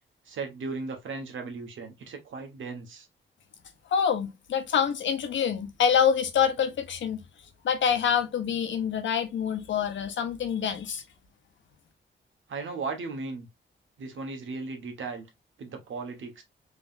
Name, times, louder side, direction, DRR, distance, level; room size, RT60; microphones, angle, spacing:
voice 1, 0.2-3.1 12.5-13.5 14.0-15.3 15.6-16.4, right 4 dB, 80° right, 1.3 m, -36 dB
voice 2, 3.9-7.2 7.6-11.0, left 7 dB, 70° left, 0.8 m, -26 dB
3.8 x 3.3 x 2.5 m
wide cardioid pair, 155°, 20 cm